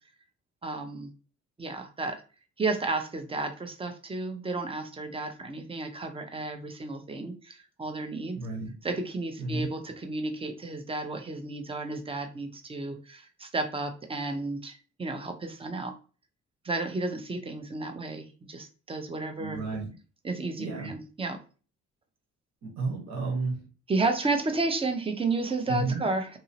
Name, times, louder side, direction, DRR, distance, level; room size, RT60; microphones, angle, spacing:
voice 1, 0.6-1.1 1.6-2.2 2.6-8.4 8.8-15.9 16.6-19.6 20.2-21.4 23.9-26.4, right 3 dB, 20° right, 6 dB, 0.6 m, -32 dB
voice 2, 8.3-8.7 9.4-9.7 19.4-19.9 20.5-20.9 22.6-23.6 25.7-26.0, right 3 dB, 60° right, -1 dB, 1.3 m, -32 dB
2.9 x 2.7 x 2.8 m, 0.35 s
cardioid pair, 90°, 30 cm